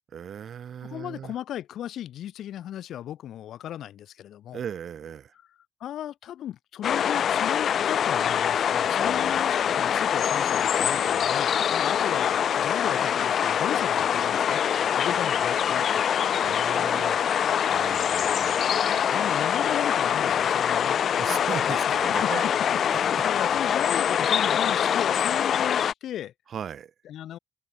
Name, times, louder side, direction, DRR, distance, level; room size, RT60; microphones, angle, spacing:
voice 1, 0.1-1.3 4.5-5.3 9.0-9.4 15.1-15.2 16.4-17.2 17.7-19.0 21.2-22.5 26.5-26.9, right 8 dB, 45° right, 1.1 m, -38 dB
voice 2, 0.8-4.6 5.8-14.6 14.9-16.2 19.1-21.0 21.7-22.3 23.0-26.3 27.0-27.4, left 11 dB, 70° left, 3.0 m, -36 dB
sound 1, 6.8-25.9, left 8 dB, 50° left, 0.4 m, -24 dB
open air
cardioid pair, 170°, 0 cm